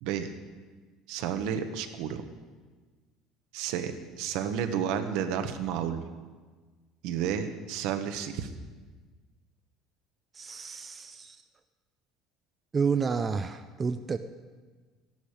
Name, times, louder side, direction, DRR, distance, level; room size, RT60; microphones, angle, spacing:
voice 1, 1.1-2.2 3.5-3.9 4.2-6.0 7.0-8.5, right 8 dB, 70° right, 8 dB, 1.1 m, -31 dB
voice 2, 10.3-11.4 12.7-14.2, right 5 dB, 20° right, 8 dB, 0.4 m, -30 dB
13.5 x 12.0 x 5.0 m, 1.4 s
cardioid pair, 160°, 0 cm